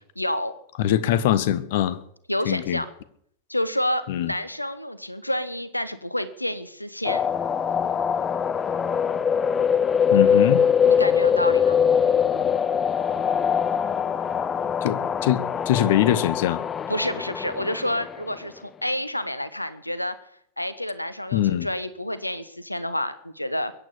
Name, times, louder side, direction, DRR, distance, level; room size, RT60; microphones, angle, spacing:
voice 1, 0.2-0.5 2.3-2.9 3.5-7.2 10.9-11.8 16.9-20.2 20.6-23.7, left 1 dB, 85° left, 14 dB, 1.2 m, -29 dB
voice 2, 0.8-2.0 2.4-2.8 4.1-4.3 10.1-10.6 14.8-16.6 21.3-21.7, left 12 dB, 55° left, 16 dB, 1.2 m, -22 dB
sound 1, 7.1-18.3, left 7 dB, 20° left, 0.6 m, -23 dB
22.0 x 9.1 x 7.0 m, 0.69 s
figure-of-eight pair, 90°, 0 cm